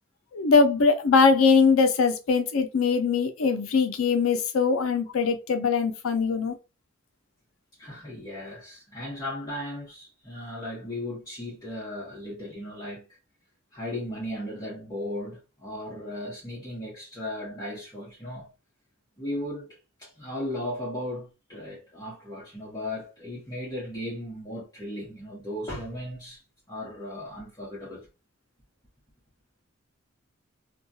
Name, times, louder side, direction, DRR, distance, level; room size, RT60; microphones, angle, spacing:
voice 1, 0.3-6.6, left 5 dB, 90° left, 0.5 m, -21 dB
voice 2, 7.8-13.0 13.7-18.5 19.2-26.4 26.7-28.1, left 1 dB, 20° left, 0.9 m, -36 dB
2.3 x 2.3 x 2.6 m
head